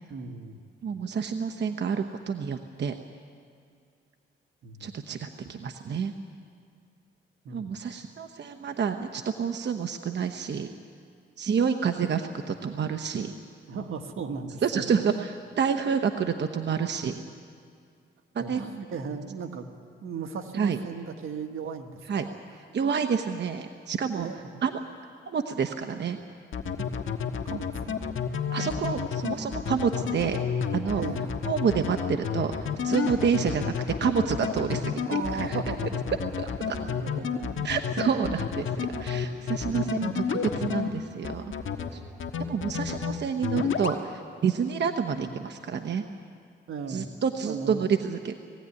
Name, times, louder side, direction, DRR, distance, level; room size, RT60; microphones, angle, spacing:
voice 1, 0.1-0.6 4.6-5.0 7.4-7.8 13.7-15.2 16.1-16.3 18.4-19.7 20.0-22.3 24.1-24.6 26.1-26.2 26.8-26.9 27.4-27.9 28.6-28.7 30.9-31.3 35.1-36.3 36.8-37.7 39.7-40.1 42.9-43.0 45.1-45.3 46.7-47.1 47.4-48.1, right 5 dB, 80° right, 6 dB, 1.6 m, -37 dB
voice 2, 0.8-2.9 4.8-6.1 7.5-10.7 11.4-13.3 14.6-17.2 18.3-18.6 20.6-20.8 22.1-22.2 22.7-24.3 24.6-24.8 25.3-26.2 28.5-30.4 30.7-31.0 31.5-32.5 32.8-33.7 34.0-35.0 35.3-35.6 36.4-36.8 37.6-38.7 39.0-41.4 41.9-42.0 42.5-46.0 46.9-48.4, right 6 dB, 55° right, 6 dB, 1.0 m, -28 dB
sound 1, 26.5-40.9 41.2-41.9 42.2-43.1 43.4-44.0, left 7 dB, 70° left, 1.5 m, -30 dB
20.5 x 15.5 x 9.8 m, 2.3 s
cardioid pair, 85°, 21 cm